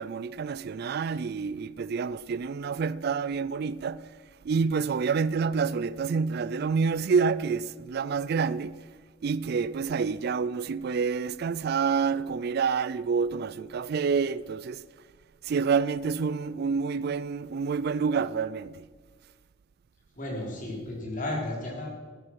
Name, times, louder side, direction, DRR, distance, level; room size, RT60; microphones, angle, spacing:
voice 1, 0.0-4.1 4.4-8.8 9.2-14.8 15.4-18.9, right 5 dB, 55° right, 0.4 m, -28 dB
voice 2, 20.2-21.9, left 1 dB, 45° left, 3.6 m, -33 dB
14.0 x 9.4 x 5.9 m
head